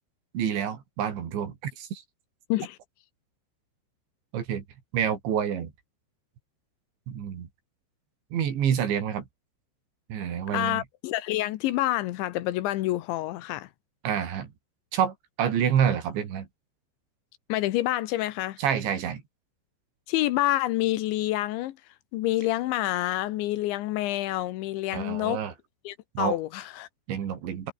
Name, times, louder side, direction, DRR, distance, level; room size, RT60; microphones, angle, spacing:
voice 1, 0.3-2.0 4.3-4.6 4.9-5.7 7.1-7.5 8.3-9.3 10.1-10.8 14.0-14.5 14.9-16.5 18.6-19.2 24.9-25.5 26.2-26.4 27.1-27.7, right 8 dB, 70° right, 5.4 m, -28 dB
voice 2, 10.5-13.7 17.5-18.6 20.1-21.8 22.1-25.4 25.8-26.9, left 16 dB, 75° left, 3.3 m, -28 dB
omnidirectional pair, 5.4 m